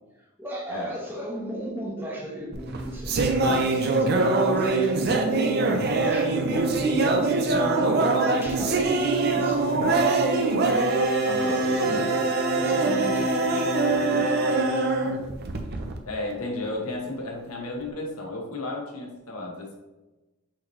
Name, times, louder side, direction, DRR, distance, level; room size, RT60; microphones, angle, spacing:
voice 1, 0.4-5.4 5.9-9.7 10.3-10.5 11.3-15.4, equal, 10° right, -4 dB, 0.8 m, -37 dB
sound 1, 2.5-16.0, right 3 dB, 45° right, 0.4 m, -23 dB
voice 2, 11.0-12.0 16.1-19.7, left 2 dB, 80° left, 0 dB, 1.0 m, -33 dB
5.6 x 3.1 x 3.1 m, 1.1 s
head